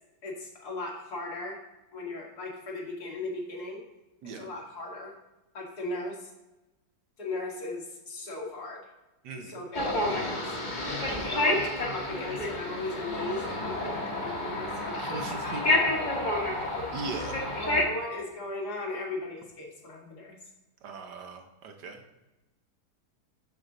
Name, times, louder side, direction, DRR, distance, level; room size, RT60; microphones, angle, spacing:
voice 1, 0.2-1.6 1.9-3.8 4.4-5.1 5.5-6.3 7.2-8.8 9.3-10.4 11.2-16.5 16.8-16.9 17.4-20.4, left 2 dB, 65° left, -2 dB, 2.2 m, -37 dB
voice 2, 9.2-9.5 11.1-11.4 15.0-15.6 16.9-17.4 20.8-22.0, right 4 dB, 75° right, 4 dB, 1.5 m, -39 dB
sound 1, 9.7-17.8, left 1 dB, 30° left, 1.2 m, -29 dB
7.6 x 6.5 x 3.8 m, 1.0 s
omnidirectional pair, 1.8 m